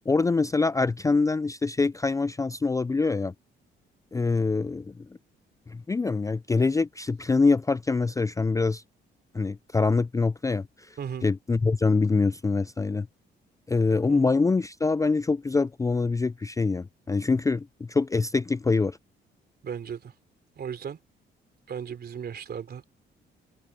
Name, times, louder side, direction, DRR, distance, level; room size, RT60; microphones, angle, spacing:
voice 1, 0.1-3.3 4.1-5.1 5.7-8.8 9.3-13.1 13.7-19.0, left 4 dB, 15° left, 0.4 m, -25 dB
voice 2, 19.6-20.1 20.5-21.0 21.7-22.9, right 7 dB, 55° right, 3.3 m, -36 dB
cardioid pair, 90°, 20 cm